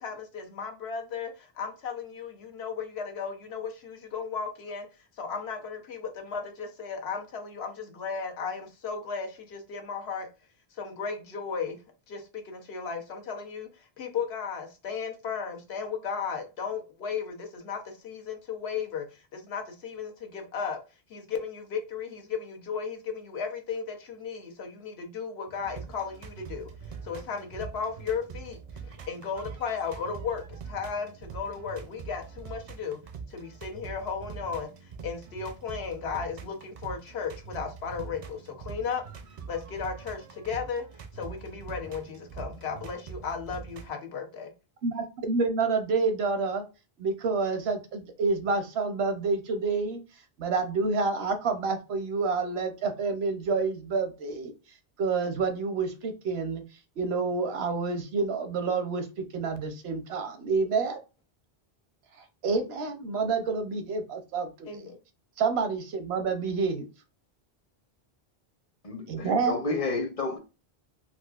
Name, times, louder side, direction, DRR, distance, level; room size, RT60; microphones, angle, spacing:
voice 1, 0.0-4.9 5.2-10.3 10.7-11.8 12.1-20.8 21.1-33.0 33.3-39.0 39.5-44.5 64.6-64.9, left 6 dB, 85° left, 1.0 m, -35 dB
sound 1, 25.5-43.9, right 5 dB, 55° right, 0.4 m, -44 dB
voice 2, 44.8-46.6 47.0-50.0 50.4-54.5 55.0-56.6 57.0-59.1 59.3-61.0 62.4-64.8 65.4-66.9 69.1-69.6, right 4 dB, 85° right, 0.9 m, -28 dB
voice 3, 68.8-70.4, left 3 dB, 40° left, 0.7 m, -31 dB
4.0 x 2.4 x 2.3 m
omnidirectional pair, 1.0 m